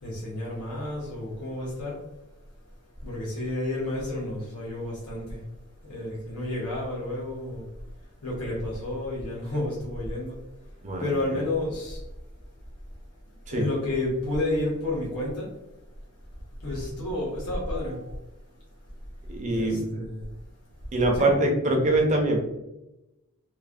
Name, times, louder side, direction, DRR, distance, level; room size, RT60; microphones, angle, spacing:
voice 1, 0.0-2.0 3.0-5.4 5.9-7.6 8.2-10.4 11.0-12.0 13.5-15.5 16.6-18.1 19.5-20.3 21.1-21.3, left 1 dB, 85° left, -4 dB, 0.8 m, -31 dB
voice 2, 10.8-11.2 13.5-13.6 19.3-19.9 20.9-22.4, right 2 dB, 35° right, 1 dB, 0.5 m, -23 dB
3.1 x 2.0 x 2.4 m, 0.96 s
head